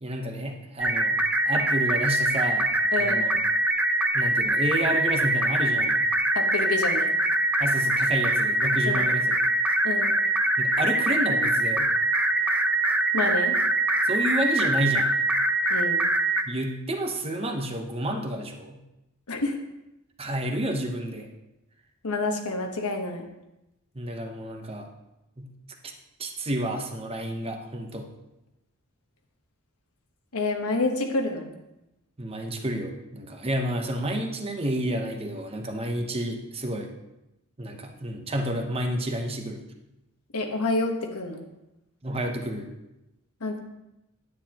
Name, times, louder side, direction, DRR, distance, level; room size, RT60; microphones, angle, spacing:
voice 1, 0.0-1.2 1.5-2.7 3.0-3.4 4.1-6.1 7.6-9.3 10.6-11.9 14.0-15.1 16.5-18.8 20.2-21.3 23.9-24.9 25.4-25.5 25.8-25.9 26.2-28.1 32.2-36.9 37.6-39.6 42.0-42.7, right 1 dB, 25° right, 4 dB, 0.8 m, -30 dB
sound 1, 0.8-16.4, right 1 dB, 5° right, 0.4 m, -23 dB
voice 2, 2.9-3.3 6.3-7.1 8.8-9.0 9.8-10.1 13.1-13.6 15.7-16.0 19.3-19.6 22.0-23.3 30.3-31.5 40.3-41.5 43.4-43.6, left 2 dB, 85° left, 4 dB, 1.2 m, -28 dB
9.7 x 9.1 x 2.9 m, 0.93 s
head